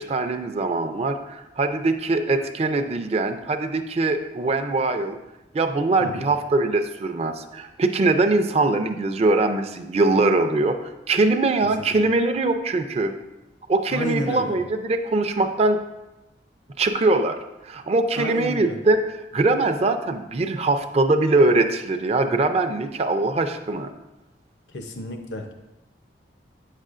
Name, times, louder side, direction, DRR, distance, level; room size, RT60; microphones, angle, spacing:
voice 1, 0.0-5.2 5.5-13.1 13.7-15.8 16.8-17.4 17.6-23.9, right 2 dB, 35° right, 6 dB, 0.4 m, -22 dB
voice 2, 13.9-14.5 18.2-18.8 24.7-25.5, equal, 80° left, 4 dB, 0.7 m, -31 dB
9.0 x 6.5 x 2.5 m, 0.97 s
head